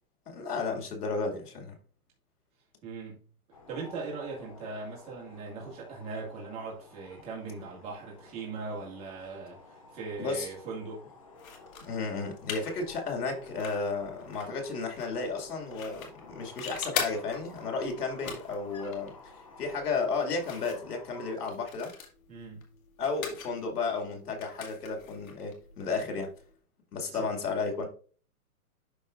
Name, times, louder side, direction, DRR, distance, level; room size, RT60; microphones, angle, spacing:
voice 1, 0.3-1.7 10.2-10.5 11.9-21.9 23.0-26.3 26.9-27.9, left 4 dB, 90° left, 2.4 m, -33 dB
voice 2, 2.8-3.2 3.7-11.0 22.3-22.6 27.1-27.3, right 4 dB, 15° right, 1.9 m, -40 dB
sound 1, 3.5-21.4, left 3 dB, 25° left, 0.5 m, -53 dB
sound 2, 11.4-26.5, left 6 dB, 65° left, 2.1 m, -43 dB
12.0 x 4.0 x 2.5 m
hypercardioid pair, 170°, 45 cm